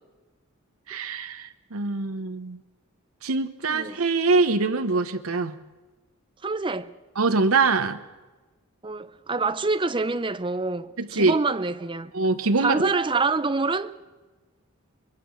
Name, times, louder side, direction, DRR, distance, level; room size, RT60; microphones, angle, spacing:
voice 1, 0.9-2.6 3.2-5.6 7.2-8.0 11.0-11.4 12.1-12.9, right 3 dB, 80° right, 1.0 m, -24 dB
voice 2, 3.7-4.0 6.4-6.9 8.8-12.1 12.6-14.0, right 3 dB, 25° right, 0.7 m, -26 dB
25.0 x 22.0 x 6.4 m
head